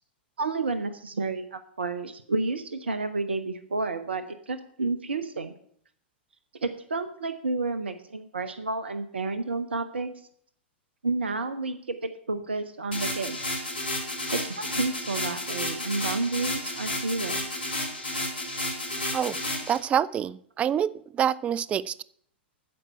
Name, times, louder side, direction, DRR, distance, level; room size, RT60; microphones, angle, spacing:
voice 1, 0.4-5.5 6.6-10.3 11.0-13.6 14.3-17.4, right 3 dB, 75° right, 10 dB, 0.9 m, -30 dB
sound 1, 12.9-19.8, left 1 dB, 70° left, 3.8 m, -32 dB
voice 2, 19.7-22.0, right 9 dB, 20° right, 18 dB, 0.4 m, -26 dB
9.9 x 6.7 x 8.6 m, 0.64 s
figure-of-eight pair, 100°, 6 cm